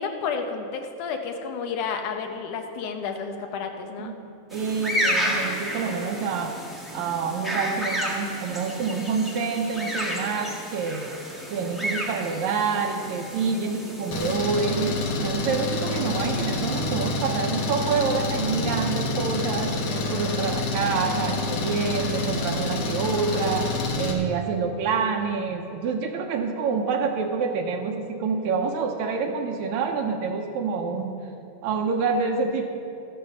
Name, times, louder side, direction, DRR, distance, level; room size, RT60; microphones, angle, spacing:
voice 1, 0.0-4.1, left 5 dB, 80° left, 4 dB, 2.4 m, -31 dB
voice 2, 4.0-6.5 6.9-11.1 11.5-19.8 20.1-23.7 24.0-31.1 31.6-32.8, right 5 dB, 75° right, 4 dB, 2.1 m, -27 dB
sound 1, 4.5-14.4, equal, ahead, 0.5 m, -31 dB
Engine, 14.1-24.1, left 2 dB, 60° left, 1.9 m, -27 dB
13.0 x 9.4 x 6.6 m, 2.8 s
omnidirectional pair, 3.6 m